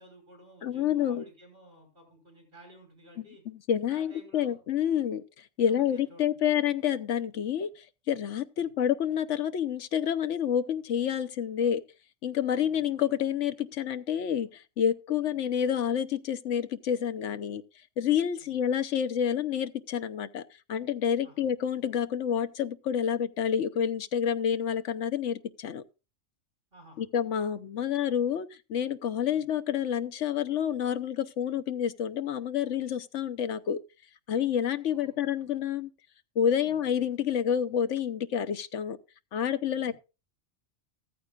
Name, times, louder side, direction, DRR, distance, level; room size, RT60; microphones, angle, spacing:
voice 1, 0.0-3.4 3.9-4.9 5.6-6.5 8.6-8.7 12.6-12.8 15.2-15.3 18.4-18.5 21.2-21.5 26.7-27.0 29.3-29.4 34.9-35.2 36.5-36.7 39.7-39.9, right 1 dB, 45° right, 6.1 m, -54 dB
voice 2, 0.6-1.2 3.2-5.2 5.6-11.8 12.2-17.6 18.0-20.4 20.7-25.8 27.0-33.8 34.3-35.9 36.4-39.0 39.3-39.9, left 9 dB, 75° left, 1.1 m, -28 dB
14.5 x 14.0 x 2.4 m
omnidirectional pair, 1.3 m